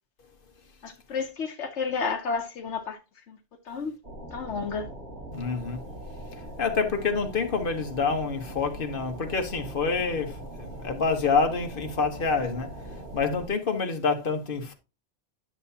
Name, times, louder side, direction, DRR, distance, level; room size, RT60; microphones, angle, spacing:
voice 1, 0.8-3.0 3.3-3.4 3.7-3.9 4.3-4.9, left 5 dB, 75° left, 1.2 m, -31 dB
sound 1, 4.0-13.5, right 1 dB, 65° right, 2.6 m, -41 dB
voice 2, 5.3-5.8 6.6-12.7 13.1-14.7, left 4 dB, 50° left, 1.5 m, -27 dB
10.5 x 7.0 x 2.8 m
omnidirectional pair, 1.2 m